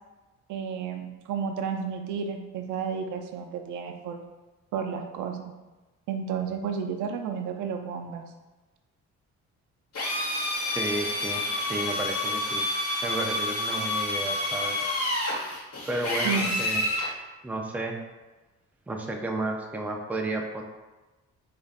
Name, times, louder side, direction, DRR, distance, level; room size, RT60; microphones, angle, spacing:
voice 1, 0.5-4.2 4.7-5.4 6.1-8.2 16.2-16.5, right 6 dB, 80° right, 5 dB, 0.5 m, -32 dB
Drill, 9.9-17.1, left 1 dB, 50° left, 1.2 m, -29 dB
voice 2, 10.7-11.4 11.7-12.6 13.0-14.8 15.9-16.9 17.4-18.0 18.9-20.6, right 2 dB, 5° right, 2 dB, 0.4 m, -32 dB
4.8 x 2.4 x 2.3 m, 1.2 s
cardioid pair, 90°, 30 cm